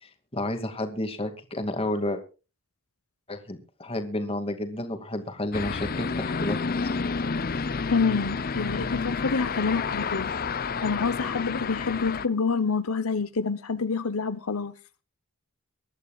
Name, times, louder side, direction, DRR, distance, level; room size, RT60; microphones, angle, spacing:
voice 1, 0.3-2.2 3.3-6.9, left 1 dB, 25° left, 2.2 m, -31 dB
sound 1, 5.5-12.3, left 5 dB, 45° left, 0.6 m, -30 dB
voice 2, 7.6-10.3 10.6-14.7, left 4 dB, 85° left, 1.0 m, -28 dB
24.0 x 11.5 x 2.4 m
head